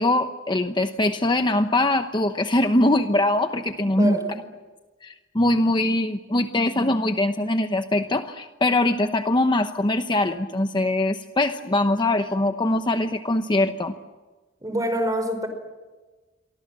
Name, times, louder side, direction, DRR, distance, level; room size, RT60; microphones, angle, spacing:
voice 1, 0.0-4.2 5.0-13.9, left 1 dB, 25° left, 7 dB, 0.9 m, -22 dB
voice 2, 4.0-4.4 14.6-15.5, right 1 dB, 20° right, 8 dB, 4.8 m, -25 dB
28.5 x 24.0 x 7.6 m, 1.2 s
head